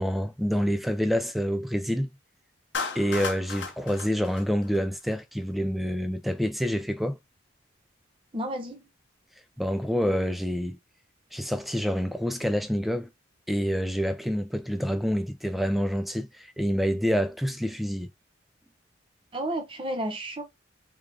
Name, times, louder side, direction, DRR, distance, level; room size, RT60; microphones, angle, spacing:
voice 1, 0.0-2.1 3.0-7.2 9.6-10.8 11.3-13.1 13.5-18.1, equal, ahead, 0.3 m, -27 dB
Clapping, 2.7-5.1, left 5 dB, 65° left, 0.7 m, -34 dB
voice 2, 8.3-8.9 19.3-20.4, right 1 dB, 25° right, 0.7 m, -32 dB
3.6 x 2.4 x 3.3 m
head